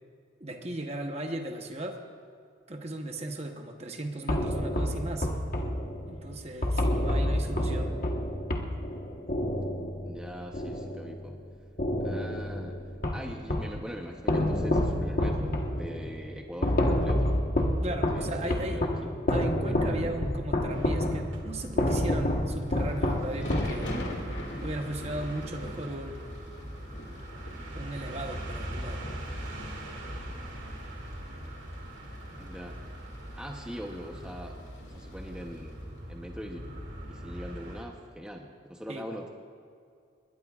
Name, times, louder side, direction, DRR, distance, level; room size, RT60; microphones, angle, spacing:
voice 1, 0.4-2.0 2.7-5.3 6.1-8.0 17.8-18.9 19.3-23.9 24.6-26.4 27.8-29.1 38.9-39.1, right 1 dB, 30° right, 4 dB, 1.0 m, -36 dB
sound 1, 4.3-11.4 11.8-13.8 14.3-24.2, left 1 dB, 45° left, 1.3 m, -29 dB
voice 2, 7.1-7.8 10.1-11.4 12.0-12.8 13.1-17.4 18.1-18.9 19.6-19.7 20.1-20.2 32.3-32.8 33.3-34.6 34.8-39.3, equal, 5° right, 1 dB, 0.8 m, -42 dB
sound 2, 20.7-37.8, equal, 65° right, 2.4 m, -41 dB
Thunder / Rain, 22.7-35.7, left 1 dB, 60° left, 2.4 m, -44 dB
21.5 x 20.5 x 2.5 m, 2.4 s
head